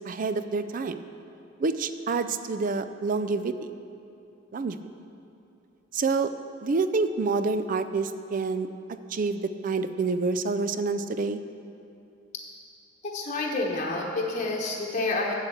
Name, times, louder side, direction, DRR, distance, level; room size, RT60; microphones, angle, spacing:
voice 1, 0.1-1.0 1.6-3.5 4.5-4.8 5.9-6.3 6.6-8.7 9.1-11.4, right 4 dB, 45° right, 11 dB, 0.4 m, -27 dB
voice 2, 13.1-15.3, left 2 dB, 35° left, -2 dB, 1.0 m, -28 dB
7.6 x 7.4 x 7.8 m, 2.6 s
head